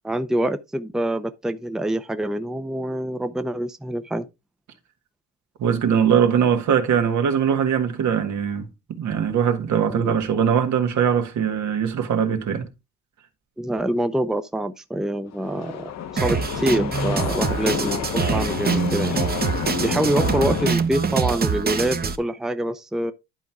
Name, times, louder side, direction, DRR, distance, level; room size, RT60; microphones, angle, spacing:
voice 1, 0.0-4.3 9.9-10.2 13.6-19.2 19.8-23.1, right 1 dB, ahead, 0.6 m, -26 dB
voice 2, 5.6-8.7 9.0-12.7, right 8 dB, 70° right, 1.7 m, -21 dB
sound 1, 15.3-20.8, left 8 dB, 60° left, 1.0 m, -29 dB
Drum kit, 16.2-22.2, right 6 dB, 30° right, 1.0 m, -24 dB
11.0 x 4.5 x 3.6 m
cardioid pair, 90°, 30 cm